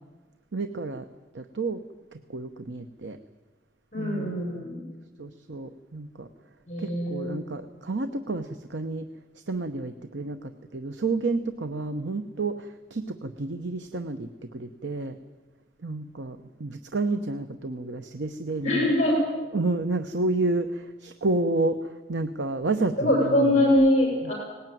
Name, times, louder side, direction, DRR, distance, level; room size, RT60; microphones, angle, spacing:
voice 1, 0.5-1.0 1.3-1.8 2.1-3.2 4.0-4.4 5.2-6.3 6.8-9.1 9.5-15.2 15.8-18.9 19.5-23.7 24.2-24.3, right 2 dB, 85° right, 9 dB, 0.9 m, -30 dB
voice 2, 3.9-4.8 6.7-7.5 18.6-19.2 23.0-24.3, left 1 dB, 40° left, -1 dB, 7.2 m, -23 dB
19.0 x 18.0 x 9.3 m, 1.2 s
head